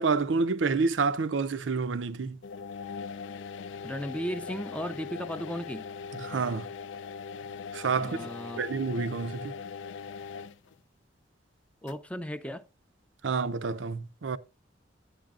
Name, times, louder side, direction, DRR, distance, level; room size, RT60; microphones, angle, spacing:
voice 1, 0.0-2.4 6.1-6.7 7.7-8.3 8.6-9.6 13.2-14.4, right 4 dB, 90° right, 0.6 m, -28 dB
sound 1, 2.4-10.7 11.9-12.0, left 5 dB, 85° left, 0.4 m, -40 dB
voice 2, 3.8-5.9 8.0-8.6 11.8-12.6, equal, 5° left, 0.4 m, -35 dB
10.5 x 9.5 x 2.4 m
head